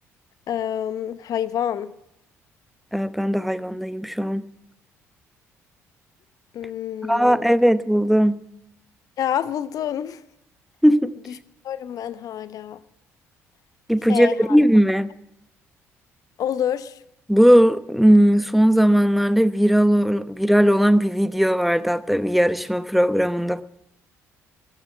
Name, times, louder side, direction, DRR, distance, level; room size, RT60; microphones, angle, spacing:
voice 1, 0.5-1.9 6.5-7.5 9.2-10.2 11.6-12.8 14.1-14.6 16.4-17.0, left 10 dB, 55° left, 0.9 m, -27 dB
voice 2, 2.9-4.5 7.0-8.4 10.8-11.1 13.9-15.1 17.3-23.6, equal, ahead, 0.9 m, -18 dB
14.5 x 11.5 x 7.4 m
figure-of-eight pair, 50°, 7 cm